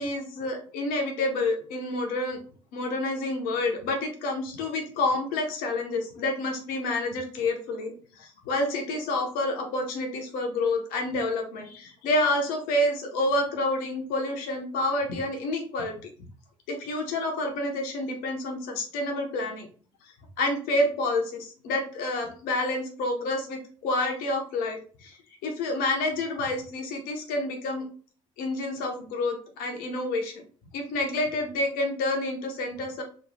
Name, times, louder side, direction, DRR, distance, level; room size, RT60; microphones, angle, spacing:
voice 1, 0.0-2.4 2.7-16.1 16.7-19.7 20.4-27.8 28.4-30.4 30.7-33.0, left 2 dB, 55° left, 2 dB, 1.0 m, -28 dB
3.1 x 2.6 x 2.8 m, 0.42 s
figure-of-eight pair, 55°, 18 cm